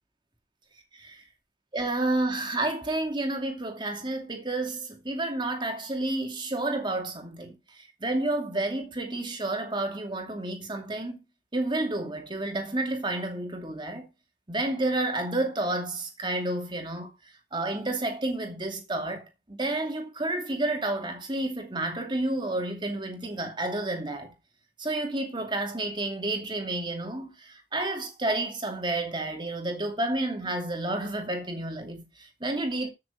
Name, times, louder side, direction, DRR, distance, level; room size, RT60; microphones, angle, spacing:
voice 1, 0.9-1.2 1.7-11.2 11.5-14.1 14.5-17.1 17.5-24.3 24.8-32.9, right 2 dB, 25° right, 2.6 m, -30 dB
14.0 x 6.7 x 3.8 m
head